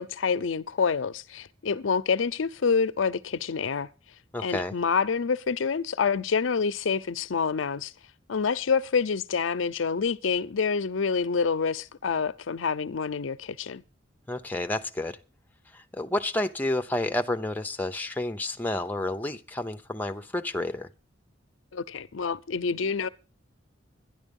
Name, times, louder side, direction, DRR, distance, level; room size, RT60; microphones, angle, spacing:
voice 1, 0.0-3.9 4.4-7.9 8.3-13.8 21.7-23.1, left 5 dB, 90° left, 0.6 m, -27 dB
voice 2, 4.3-4.7 14.3-15.2 15.7-20.9, left 1 dB, 10° left, 0.7 m, -30 dB
12.0 x 10.5 x 5.3 m
head